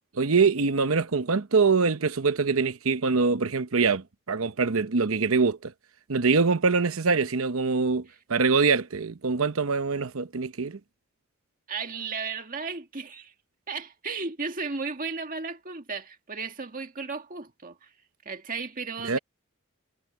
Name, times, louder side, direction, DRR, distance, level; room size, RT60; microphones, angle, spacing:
voice 1, 0.2-5.7 6.1-10.8 19.1-19.2, right 4 dB, 75° right, 0.9 m, -24 dB
voice 2, 11.7-13.3 13.7-17.9 18.3-19.2, right 4 dB, 40° right, 1.9 m, -34 dB
head